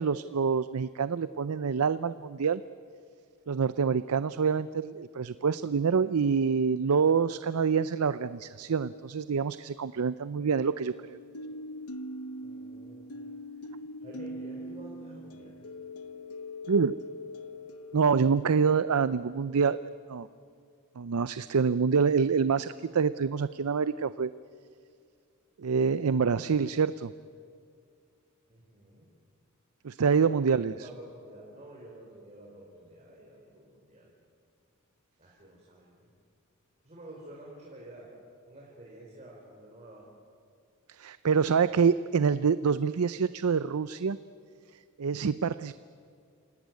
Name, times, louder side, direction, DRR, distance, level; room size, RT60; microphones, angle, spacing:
voice 1, 0.0-2.6 3.5-11.2 16.7-17.0 17.9-19.8 20.1-20.3 21.0-24.3 25.6-27.1 29.8-30.7 40.9-44.2 45.0-45.7, right 6 dB, 75° right, 15 dB, 0.5 m, -26 dB
sound 1, 7.5-8.3 10.9-18.7, left 1 dB, 85° left, 1.1 m, -42 dB
voice 2, 12.4-13.1 14.0-15.6 28.5-29.1 30.1-34.1 35.2-35.9 36.8-38.1 38.5-40.1, right 1 dB, 30° right, -3 dB, 4.6 m, -49 dB
27.5 x 18.0 x 9.4 m, 2.3 s
head